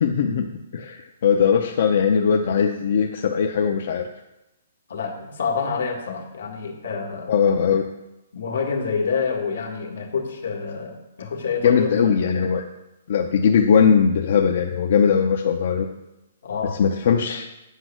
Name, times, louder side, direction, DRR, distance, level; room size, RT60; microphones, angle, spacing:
voice 1, 0.0-4.1 7.3-7.9 11.6-12.7 13.1-15.9 16.8-17.5, left 6 dB, 50° left, 4 dB, 0.6 m, -20 dB
voice 2, 4.9-7.4 8.3-12.1 16.4-16.8, left 5 dB, 80° left, 2 dB, 1.8 m, -27 dB
8.3 x 5.4 x 6.1 m, 0.94 s
hypercardioid pair, 170°, 0 cm